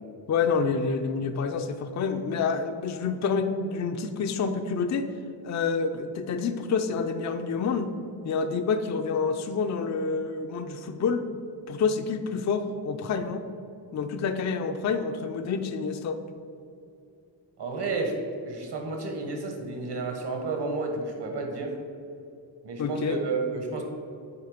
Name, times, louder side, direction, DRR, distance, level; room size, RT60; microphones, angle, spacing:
voice 1, 0.3-5.1 5.4-7.9 8.2-11.2 11.7-13.4 13.9-16.2 22.8-23.2, left 5 dB, 40° left, 7 dB, 0.5 m, -28 dB
voice 2, 17.6-18.2 18.4-21.8 22.6-23.8, right 3 dB, 55° right, 3 dB, 1.4 m, -31 dB
8.8 x 3.2 x 5.0 m, 2.5 s
cardioid pair, 80°, 47 cm